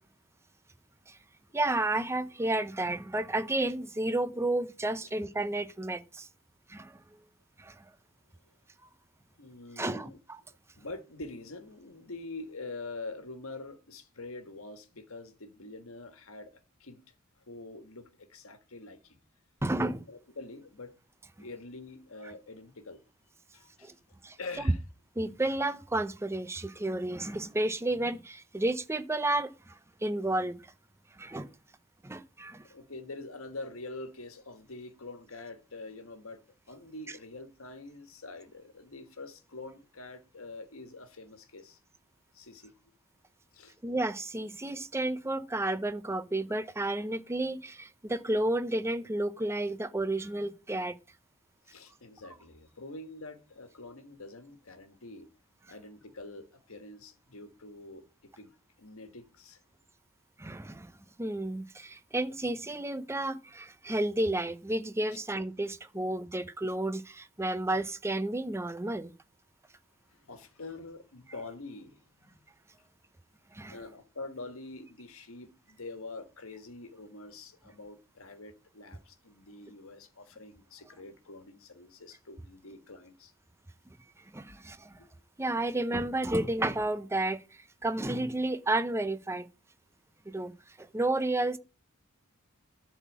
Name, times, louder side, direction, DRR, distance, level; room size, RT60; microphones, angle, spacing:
voice 1, 1.5-6.3 6.7-6.9 7.6-7.7 9.8-10.4 19.6-20.0 23.8-23.9 24.2-24.4 25.2-30.6 31.2-31.5 32.0-32.6 43.8-51.0 60.4-60.9 61.2-69.1 73.5-73.8 84.3-85.0 85.4-87.4 87.8-89.5 90.3-90.5 90.8-91.6, right 2 dB, 10° right, 0.6 m, -31 dB
voice 2, 9.4-10.2 10.8-16.5 16.8-17.0 17.5-19.2 19.7-20.9 21.4-23.0 23.5-23.9 24.4-24.8 32.7-36.4 36.7-41.8 42.3-42.7 43.5-43.7 51.6-55.3 55.7-59.6 65.1-65.2 65.9-66.3 70.1-72.4 72.8-72.9 73.7-83.3 84.9-85.1, left 2 dB, 70° left, 1.5 m, -45 dB
12.0 x 4.2 x 7.2 m
head